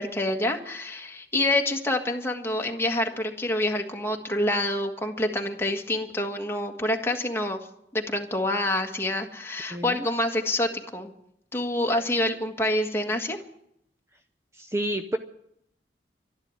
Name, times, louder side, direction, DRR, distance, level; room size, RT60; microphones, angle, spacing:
voice 1, 0.0-7.7 7.9-11.1 11.5-13.4, left 1 dB, 15° left, 2 dB, 1.6 m, -27 dB
voice 2, 9.7-10.1 14.6-15.2, right 1 dB, 15° right, 7 dB, 0.6 m, -29 dB
13.0 x 11.0 x 9.8 m, 0.75 s
head